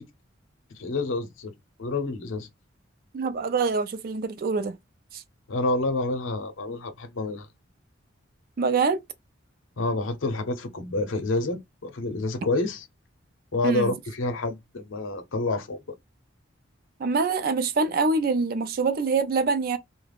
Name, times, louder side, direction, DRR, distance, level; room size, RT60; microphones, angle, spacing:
voice 1, 0.7-1.5 1.8-2.5 5.5-7.5 9.8-12.9 13.5-15.8, left 2 dB, 85° left, 0.6 m, -28 dB
voice 2, 3.1-4.8 5.1-5.2 8.6-9.0 13.6-13.9 17.0-19.8, right 4 dB, 50° right, 0.3 m, -25 dB
2.3 x 2.0 x 3.3 m
head